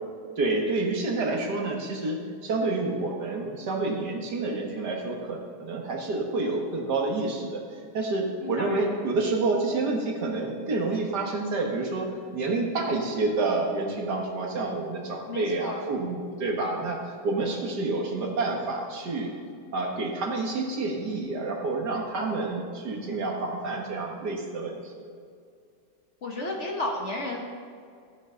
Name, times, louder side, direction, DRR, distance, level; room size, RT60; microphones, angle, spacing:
voice 1, 0.4-7.6 7.9-19.3 19.7-24.9, right 3 dB, 70° right, 0 dB, 2.1 m, -28 dB
voice 2, 8.4-9.0 15.3-15.8 26.2-27.4, left 2 dB, 45° left, 0 dB, 1.4 m, -33 dB
14.5 x 9.2 x 3.9 m, 2.2 s
omnidirectional pair, 1.9 m